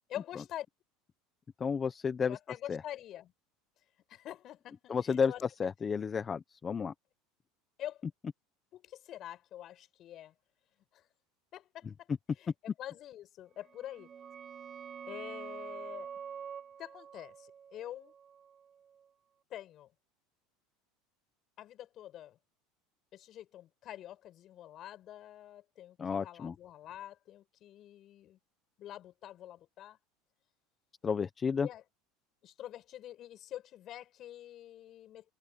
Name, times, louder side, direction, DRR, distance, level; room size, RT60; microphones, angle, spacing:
voice 1, 0.1-0.7 2.3-3.3 4.1-5.4 7.8-8.0 8.7-10.3 10.9-11.1 11.5-12.1 12.4-14.1 15.0-16.1 16.8-18.1 19.5-19.9 21.6-22.4 23.1-28.4 28.8-30.0 31.6-31.8 32.4-35.3, left 12 dB, 45° left, 6.4 m, -46 dB
voice 2, 1.6-2.4 2.7-2.8 4.9-5.3 5.6-6.9 26.0-26.5 31.0-31.7, left 6 dB, 25° left, 1.0 m, -31 dB
sound 1, 13.6-19.1, right 7 dB, 30° right, 2.1 m, -47 dB
supercardioid pair, 130°, 0 cm